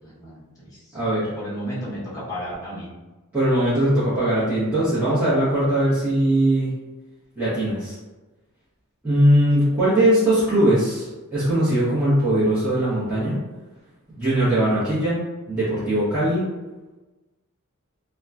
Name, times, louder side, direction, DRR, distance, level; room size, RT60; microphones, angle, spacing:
voice 1, 0.0-1.0 1.4-2.9, equal, 15° left, -8 dB, 1.0 m, -33 dB
voice 2, 0.9-1.3 3.3-6.7 7.4-8.0 9.0-13.4 14.1-15.2 15.5-16.4, right 1 dB, 5° right, -14 dB, 0.9 m, -20 dB
2.8 x 2.2 x 2.4 m, 1.1 s
head